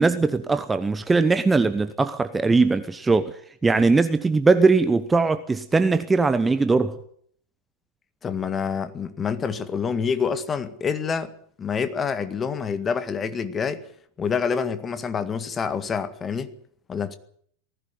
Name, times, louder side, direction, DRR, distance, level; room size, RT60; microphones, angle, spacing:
voice 1, 0.0-3.3 3.6-6.9, right 3 dB, 10° right, 1.0 m, -20 dB
voice 2, 8.2-11.3 11.6-13.8 14.2-16.5 16.9-17.2, left 6 dB, 20° left, 1.8 m, -27 dB
19.0 x 15.5 x 9.5 m
figure-of-eight pair, 90°, 0 cm